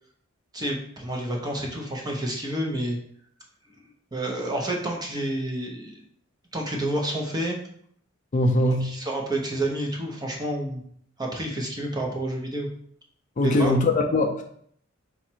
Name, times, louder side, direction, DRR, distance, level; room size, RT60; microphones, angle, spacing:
voice 1, 0.5-3.0 4.1-6.0 6.5-7.6 8.8-10.8 11.2-12.7 13.4-13.7, right 1 dB, 20° right, 0 dB, 0.7 m, -29 dB
voice 2, 8.3-8.9 13.4-14.4, left 1 dB, 40° left, 3 dB, 0.4 m, -21 dB
4.1 x 2.4 x 4.4 m, 0.65 s
head